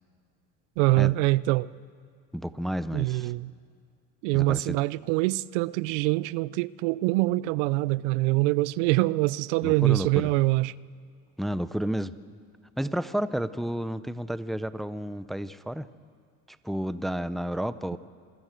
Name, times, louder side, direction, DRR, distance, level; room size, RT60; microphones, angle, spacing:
voice 1, 0.8-1.7 2.9-3.5 4.2-10.7, right 20 dB, 85° right, 0.5 m, -24 dB
voice 2, 2.3-3.3 4.3-4.8 9.6-10.3 11.4-12.1 12.8-15.9 16.6-18.0, equal, ahead, 0.5 m, -31 dB
26.5 x 16.0 x 7.5 m
supercardioid pair, 105°, 35 cm